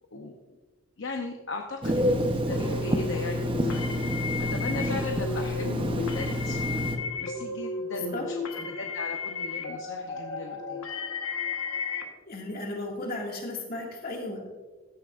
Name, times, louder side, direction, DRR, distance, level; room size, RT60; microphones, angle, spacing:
voice 1, 1.0-4.0 4.4-6.7 7.2-10.9, left 3 dB, 60° left, 3 dB, 0.7 m, -38 dB
Telephone, 1.8-7.0, equal, 25° right, 0.8 m, -28 dB
sound 1, 2.5-12.0, left 4 dB, 90° left, 1.3 m, -34 dB
voice 2, 12.3-14.4, left 2 dB, 45° left, 0 dB, 2.1 m, -35 dB
14.5 x 10.0 x 2.5 m, 1.3 s
head